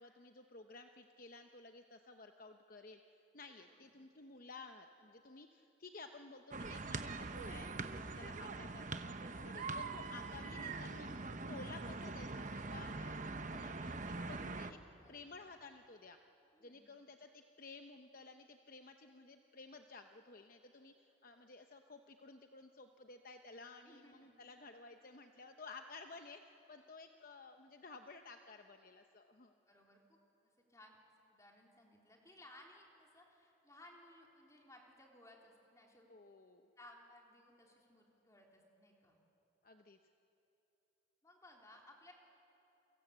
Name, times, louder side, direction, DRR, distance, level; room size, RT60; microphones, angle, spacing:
voice 1, 0.0-3.0 3.3-14.8 15.1-16.2 16.6-26.4 26.7-29.5 36.1-36.7 39.6-40.0, left 3 dB, 45° left, 5 dB, 0.9 m, -54 dB
voice 2, 3.6-4.0 15.0-15.5 16.5-16.9 23.8-24.4 29.7-31.0 31.3-36.1 36.8-39.2 41.2-42.1, left 1 dB, 15° left, 0 dB, 3.6 m, -61 dB
sound 1, 6.5-14.7, right 3 dB, 40° right, 1.0 m, -43 dB
29.5 x 23.5 x 8.3 m, 3.0 s
head